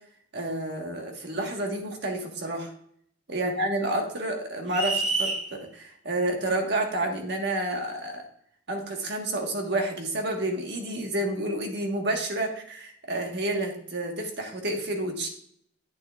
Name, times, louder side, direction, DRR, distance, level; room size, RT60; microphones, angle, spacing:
voice 1, 0.3-2.7 3.3-5.3 5.7-8.2 8.7-15.3, right 1 dB, 60° right, 3 dB, 1.5 m, -29 dB
sound 1, 4.7-5.4, right 3 dB, 85° right, 3.6 m, -27 dB
10.0 x 8.5 x 2.4 m, 0.66 s
head